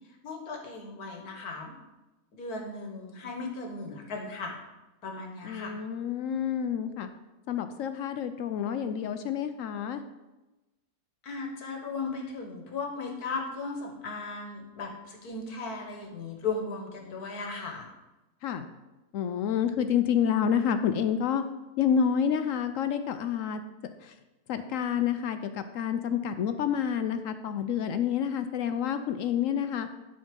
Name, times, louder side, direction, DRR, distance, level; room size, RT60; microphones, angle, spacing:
voice 1, 0.2-1.7 2.3-4.6 5.0-5.8 11.2-17.9, left 4 dB, 85° left, 1 dB, 1.8 m, -36 dB
voice 2, 5.4-7.1 7.5-10.0 18.4-18.6 19.1-21.4 21.8-23.6 24.0-24.1 24.5-29.9, left 8 dB, 70° left, 10 dB, 0.9 m, -28 dB
11.0 x 4.1 x 5.2 m, 1.1 s
omnidirectional pair, 1.6 m